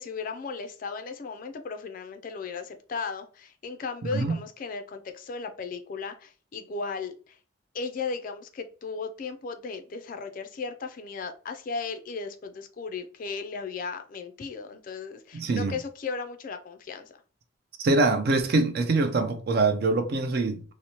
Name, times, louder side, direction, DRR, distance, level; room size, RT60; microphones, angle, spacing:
voice 1, 0.0-7.4 7.7-17.2, left 4 dB, 40° left, 0.3 m, -36 dB
voice 2, 15.3-15.7 17.8-20.6, right 3 dB, 50° right, 0.4 m, -24 dB
2.9 x 2.0 x 2.7 m
head